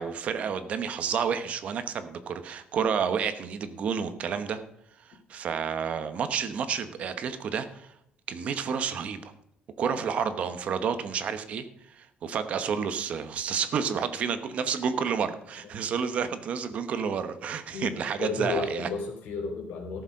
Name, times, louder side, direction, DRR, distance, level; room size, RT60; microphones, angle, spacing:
voice 1, 0.0-4.6 5.0-7.9 8.3-9.3 9.8-18.9, right 7 dB, 45° right, 10 dB, 1.1 m, -30 dB
voice 2, 18.2-20.0, left 5 dB, 75° left, 3 dB, 3.0 m, -32 dB
14.0 x 7.1 x 5.3 m, 0.77 s
cardioid pair, 165°, 3 cm